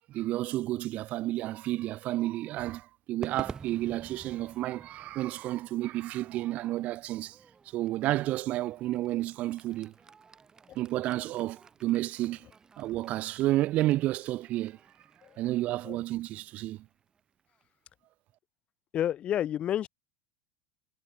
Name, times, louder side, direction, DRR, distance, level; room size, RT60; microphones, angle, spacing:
voice 1, 0.1-7.4 7.7-9.9 10.7-12.5 12.8-14.8 15.4-16.9, right 16 dB, 50° right, 2.9 m, -31 dB
Crowd / Fireworks, 3.2-17.6, right 5 dB, 20° right, 4.7 m, -50 dB
voice 2, 18.9-19.9, left 11 dB, 40° left, 4.2 m, -30 dB
hypercardioid pair, 95°, 3 cm